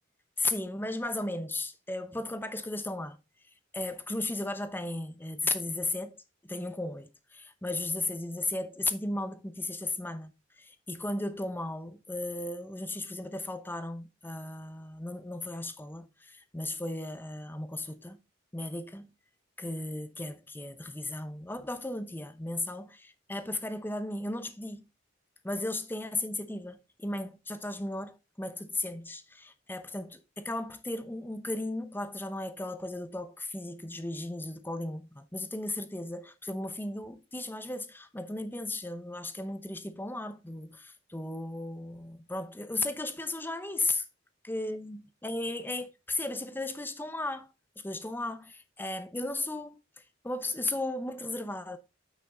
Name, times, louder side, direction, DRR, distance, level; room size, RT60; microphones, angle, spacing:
voice 1, 0.4-3.2 3.7-6.2 6.4-10.3 10.6-18.2 18.5-19.1 19.6-24.8 25.4-44.1 44.5-47.5 47.8-49.8 50.2-51.8, left 2 dB, 10° left, 0.8 m, -35 dB
8.7 x 6.0 x 3.8 m
head